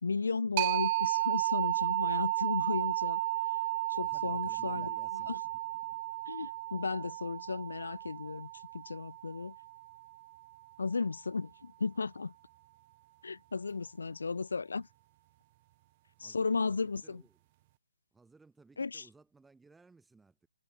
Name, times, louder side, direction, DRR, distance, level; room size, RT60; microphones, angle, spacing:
voice 1, 0.0-3.2 3.9-5.4 6.3-9.5 10.8-12.3 13.2-14.9 16.2-17.2 18.8-19.1, left 4 dB, 75° left, 0.4 m, -35 dB
sound 1, 0.6-10.0, right 19 dB, 30° right, 0.4 m, -33 dB
voice 2, 4.0-5.3 5.8-6.0 14.1-14.2 16.2-17.4 18.1-20.5, right 4 dB, 5° right, 2.8 m, -60 dB
hypercardioid pair, 150°, 0 cm